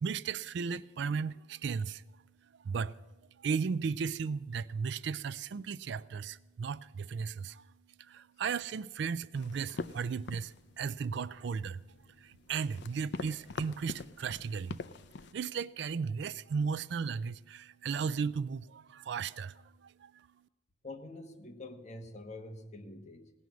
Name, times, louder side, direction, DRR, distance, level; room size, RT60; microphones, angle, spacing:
voice 1, 0.0-2.0 2.5-3.1 3.4-7.7 8.0-11.8 12.2-14.8 15.3-20.3, right 5 dB, 65° right, 0.4 m, -35 dB
sound 1, 9.3-15.3, left 3 dB, 60° left, 0.5 m, -44 dB
voice 2, 20.8-23.3, left 2 dB, 40° left, 1.2 m, -46 dB
17.5 x 6.2 x 9.3 m
head